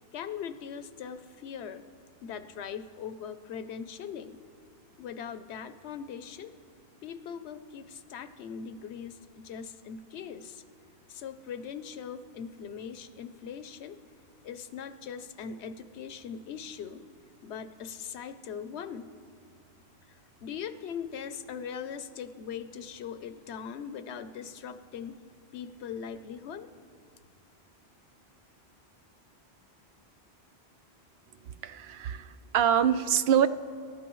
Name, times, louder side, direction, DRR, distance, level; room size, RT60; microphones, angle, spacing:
voice 1, 0.1-1.9 2.2-4.4 5.0-6.5 7.0-10.6 11.1-14.0 14.4-17.0 17.4-19.1 20.1-25.2 25.5-26.7, left 7 dB, 85° left, 11 dB, 0.9 m, -40 dB
voice 2, 31.4-33.5, right 9 dB, 75° right, 12 dB, 0.8 m, -25 dB
25.5 x 12.5 x 3.1 m, 2.3 s
omnidirectional pair, 1.1 m